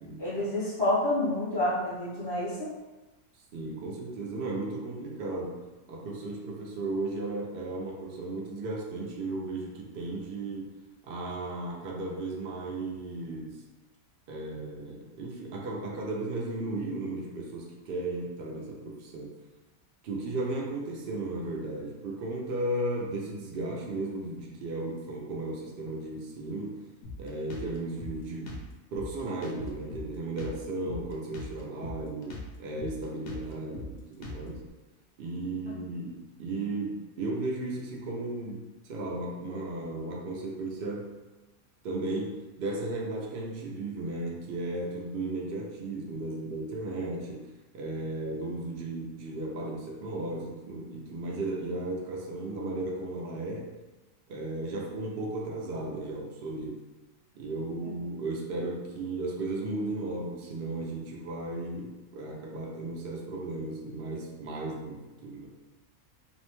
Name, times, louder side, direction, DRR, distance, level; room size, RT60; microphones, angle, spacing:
voice 1, 0.2-2.7 57.8-57.9, left 1 dB, 25° right, -10 dB, 0.5 m, -28 dB
voice 2, 3.5-5.6 5.9-10.7 11.0-13.6 14.3-19.3 20.0-26.8 27.2-28.6 28.9-34.6 35.2-41.1 41.8-53.7 54.3-56.8 57.3-65.5, right 2 dB, 90° right, -2 dB, 0.5 m, -35 dB
Drum kit, 27.0-34.7, left 2 dB, 65° left, 0.8 m, -42 dB
2.7 x 2.1 x 3.0 m, 1.1 s
omnidirectional pair, 1.5 m